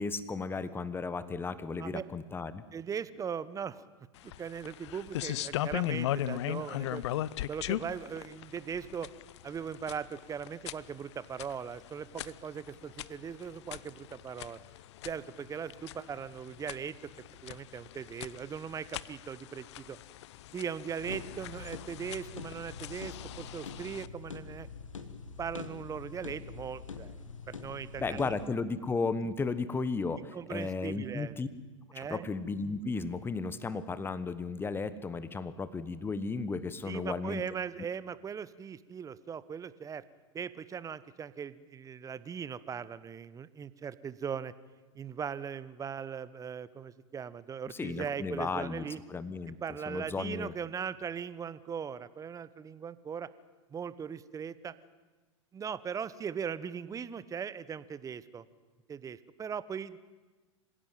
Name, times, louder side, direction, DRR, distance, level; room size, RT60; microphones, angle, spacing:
voice 1, 0.0-2.6 28.0-31.5 31.9-37.4 47.7-49.6 49.9-50.5, left 4 dB, 15° left, 15 dB, 1.2 m, -34 dB
voice 2, 2.7-3.9 4.2-7.0 7.5-9.1 9.4-14.6 15.0-20.0 20.5-24.7 25.4-27.1 27.5-28.3 29.2-29.3 30.3-31.4 31.9-32.3 36.8-40.0 40.3-44.5 44.9-49.0 49.6-53.3 53.7-54.7 55.5-58.4 58.9-60.0, right 7 dB, 20° right, 17 dB, 1.0 m, -39 dB
sound 1, 4.2-24.1, left 13 dB, 60° left, 0.8 m, -39 dB
sound 2, 21.0-28.5, left 5 dB, 85° left, 1.8 m, -45 dB
26.5 x 16.5 x 9.2 m, 1.3 s
hypercardioid pair, 95°, 16 cm